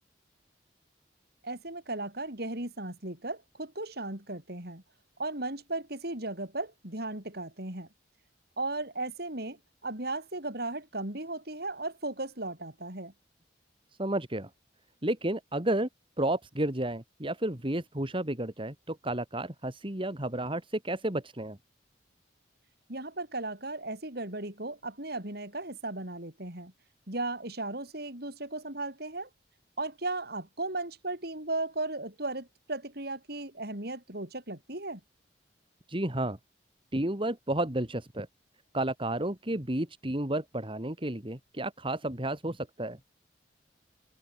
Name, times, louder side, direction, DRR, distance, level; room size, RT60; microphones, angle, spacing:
voice 1, 1.4-4.8 5.2-7.9 8.6-13.1 22.9-26.7 27.1-29.3 29.8-35.0, right 2 dB, 60° right, 6.0 m, -36 dB
voice 2, 14.0-14.5 15.0-15.9 16.2-21.6 35.9-36.4 36.9-38.3 38.7-43.0, right 1 dB, 30° right, 2.6 m, -31 dB
open air
head